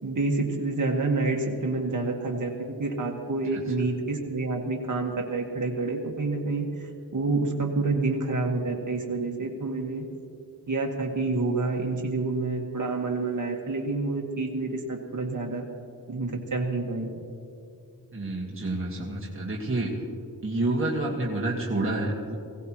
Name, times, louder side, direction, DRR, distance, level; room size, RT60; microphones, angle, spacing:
voice 1, 0.0-6.6 7.1-10.0 10.7-15.6 16.1-17.1, right 3 dB, 50° right, 0 dB, 1.7 m, -28 dB
voice 2, 18.1-20.0 20.4-22.4, right 2 dB, 35° right, -3 dB, 1.7 m, -28 dB
20.0 x 17.0 x 3.0 m, 2.5 s
wide cardioid pair, 75°, 38 cm